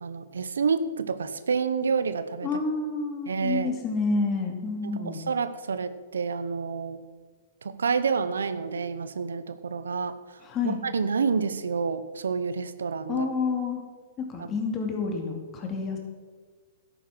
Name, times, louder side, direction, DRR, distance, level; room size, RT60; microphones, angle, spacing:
voice 1, 0.0-2.5 3.3-3.7 4.8-7.0 7.6-10.2 10.6-13.3 14.4-14.5, right 5 dB, 85° right, 13 dB, 0.7 m, -28 dB
voice 2, 2.4-5.2 10.4-10.8 13.1-13.8 14.2-16.0, left 4 dB, 25° left, 2 dB, 2.7 m, -29 dB
11.5 x 9.0 x 6.1 m, 1.5 s
hypercardioid pair, 125°, 0 cm